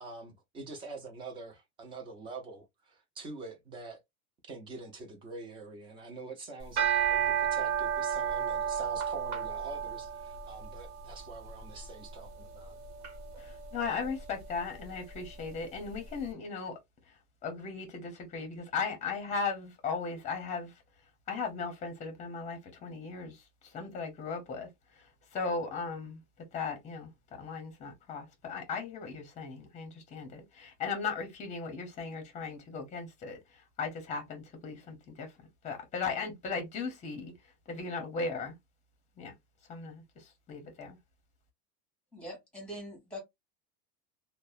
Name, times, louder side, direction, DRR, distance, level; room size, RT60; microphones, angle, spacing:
voice 1, 0.0-4.0 4.5-12.8, right 3 dB, 15° right, 0.3 m, -45 dB
sound 1, 6.6-16.0, right 8 dB, 70° right, 1.1 m, -34 dB
voice 2, 13.4-16.8 17.4-20.7 21.3-23.4 23.7-24.7 25.3-26.2 26.5-33.4 33.8-35.3 35.6-37.3 37.7-38.6 39.2-39.3 39.7-41.0, left 4 dB, 20° left, 0.8 m, -37 dB
voice 3, 42.1-43.2, equal, 5° left, 1.4 m, -43 dB
2.6 x 2.0 x 2.3 m
supercardioid pair, 160°, 34 cm